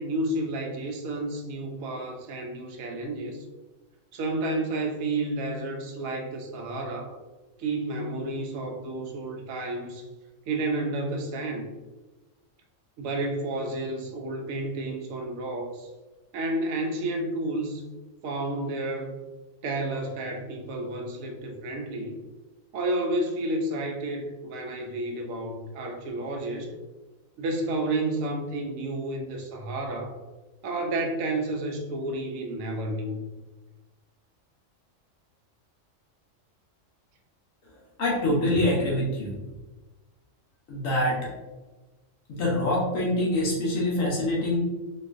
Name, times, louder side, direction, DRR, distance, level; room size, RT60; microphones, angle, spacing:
voice 1, 0.0-3.4 4.1-7.2 7.6-10.1 10.5-11.7 13.0-15.9 16.3-17.8 18.2-19.2 19.6-22.1 22.7-26.7 27.4-30.2 30.6-33.2, right 2 dB, 85° right, 2 dB, 1.0 m, -31 dB
voice 2, 38.0-39.4 40.7-41.2 42.3-44.6, left 1 dB, 75° left, -4 dB, 1.1 m, -25 dB
4.1 x 2.4 x 2.5 m, 1.2 s
omnidirectional pair, 1.4 m